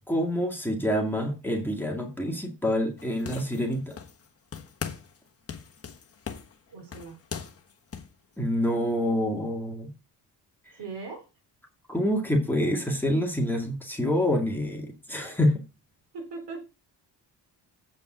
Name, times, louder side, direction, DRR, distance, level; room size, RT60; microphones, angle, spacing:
voice 1, 0.1-4.0 8.4-9.9 11.9-15.6, equal, 5° left, -1 dB, 2.1 m, -27 dB
sound 1, 3.0-4.3 4.5-5.2 5.5-8.1, left 6 dB, 35° left, 1.4 m, -39 dB
voice 2, 6.7-7.2 10.7-11.3 16.1-16.7, right 4 dB, 70° right, 4 dB, 4.5 m, -39 dB
8.3 x 5.2 x 6.1 m, 0.29 s
cardioid pair, 135°, 43 cm